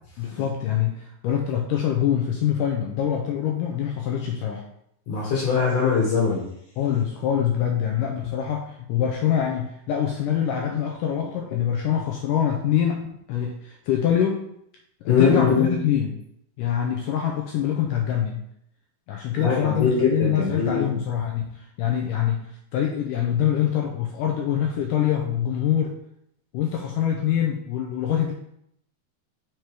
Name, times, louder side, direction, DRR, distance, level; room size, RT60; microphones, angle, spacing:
voice 1, 0.2-4.6 6.8-14.5 15.0-16.1 16.6-18.5 19.1-22.5 22.7-26.0 26.5-28.3, left 9 dB, 80° left, 1 dB, 1.9 m, -25 dB
voice 2, 5.1-6.4 15.1-15.7 19.4-20.9, left 5 dB, 55° left, -4 dB, 2.2 m, -21 dB
6.5 x 4.4 x 4.7 m, 0.74 s
omnidirectional pair, 4.4 m